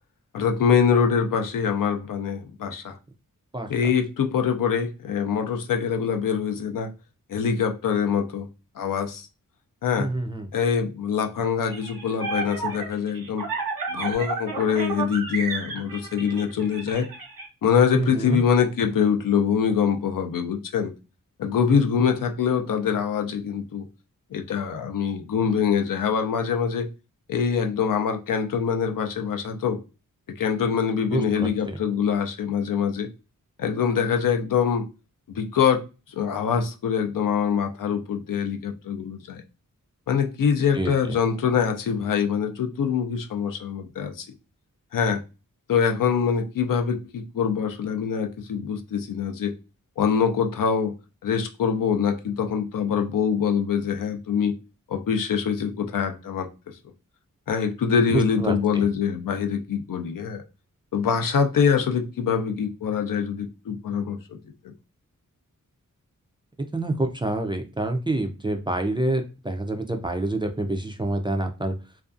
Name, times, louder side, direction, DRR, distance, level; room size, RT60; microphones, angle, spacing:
voice 1, 0.3-3.0 3.7-6.9 7.3-8.5 8.8-9.3 9.8-10.1 10.5-13.5 13.9-17.1 17.6-20.9 21.4-23.9 24.3-26.9 27.3-29.8 30.4-33.1 33.6-34.9 35.3-35.8 36.1-39.4 40.1-44.3 44.9-45.2 45.7-49.5 50.0-50.9 51.2-54.5 54.9-56.7 57.5-60.4 60.9-64.2 64.6-64.7, left 7 dB, 70° left, 5 dB, 0.5 m, -24 dB
voice 2, 10.0-10.5 17.9-18.4 31.1-31.8 40.7-41.2 58.1-58.9 66.7-71.7, right 2 dB, 15° right, 4 dB, 0.3 m, -27 dB
sound 1, 11.6-17.4, right 4 dB, 85° right, 0.9 m, -31 dB
2.5 x 2.3 x 2.4 m, 0.30 s
wide cardioid pair, 75°, 34 cm